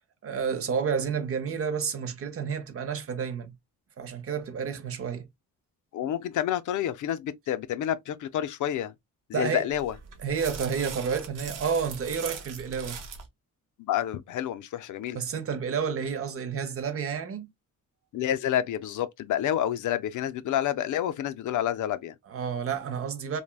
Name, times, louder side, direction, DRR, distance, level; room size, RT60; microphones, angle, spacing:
voice 1, 0.2-3.5 4.0-5.3 9.3-9.7 10.2-13.0 15.1-17.5 22.3-23.4, right 6 dB, 45° right, 0.6 m, -30 dB
voice 2, 5.9-8.9 9.3-9.9 13.9-15.2 18.1-22.1, left 11 dB, 65° left, 0.5 m, -29 dB
sound 1, 9.7-13.3, right 6 dB, 75° right, 0.8 m, -40 dB
3.3 x 2.2 x 2.2 m
cardioid pair, 135°, 32 cm